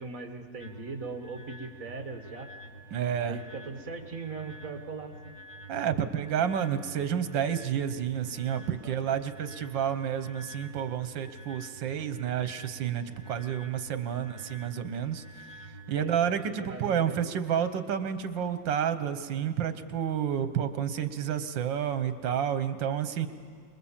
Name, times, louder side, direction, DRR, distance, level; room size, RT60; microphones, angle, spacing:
voice 1, 0.0-2.5 3.2-5.3 8.8-9.1 14.1-14.2 15.9-16.1 16.6-17.3, right 4 dB, 45° right, 5 dB, 2.0 m, -40 dB
sound 1, 0.6-16.5, right 1 dB, 25° left, 2.5 m, -48 dB
voice 2, 2.9-3.4 5.7-15.2 15.9-23.3, right 9 dB, 75° right, 10 dB, 1.7 m, -30 dB
26.5 x 21.0 x 7.3 m, 2.2 s
omnidirectional pair, 2.0 m